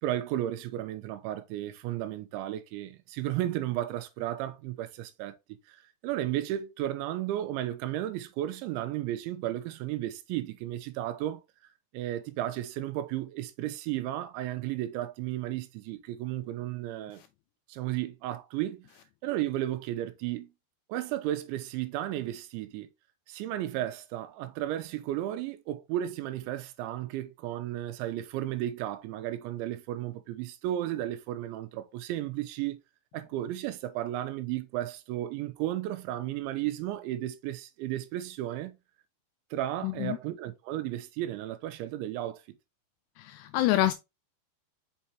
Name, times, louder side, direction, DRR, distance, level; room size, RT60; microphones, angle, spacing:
voice 1, 0.0-5.4 5.7-11.4 11.9-17.2 17.7-18.9 19.2-20.5 20.9-22.9 23.3-32.8 33.1-38.7 39.5-42.4, right 13 dB, 90° right, 3.1 m, -34 dB
voice 2, 39.8-40.2 43.2-43.9, left 14 dB, 85° left, 2.4 m, -26 dB
6.3 x 5.6 x 2.9 m
omnidirectional pair, 5.3 m